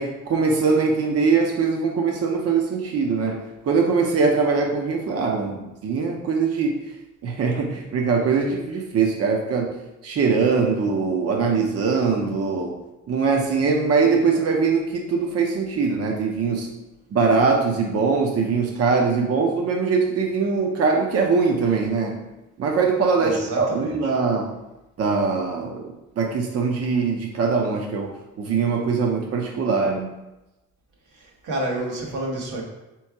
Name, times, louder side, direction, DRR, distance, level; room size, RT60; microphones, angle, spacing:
voice 1, 0.0-6.7 7.2-9.8 10.0-12.7 13.1-16.7 17.1-22.1 22.6-24.5 25.0-28.1 28.4-30.1, right 4 dB, 50° right, 1 dB, 0.7 m, -22 dB
voice 2, 23.2-24.1 31.1-32.6, right 1 dB, 90° right, -2 dB, 1.2 m, -29 dB
3.5 x 3.1 x 4.5 m, 1.0 s
cardioid pair, 90°, 30 cm